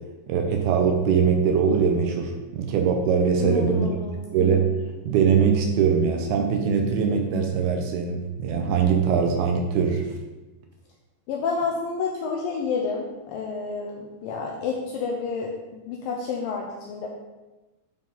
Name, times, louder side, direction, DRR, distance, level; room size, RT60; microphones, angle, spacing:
voice 1, 0.3-3.9 4.3-4.7 5.1-10.0, right 6 dB, 80° right, 3 dB, 2.4 m, -22 dB
voice 2, 3.4-4.3 11.3-17.1, left 5 dB, 80° left, 0 dB, 2.1 m, -29 dB
10.5 x 4.3 x 4.0 m, 1.1 s
omnidirectional pair, 4.8 m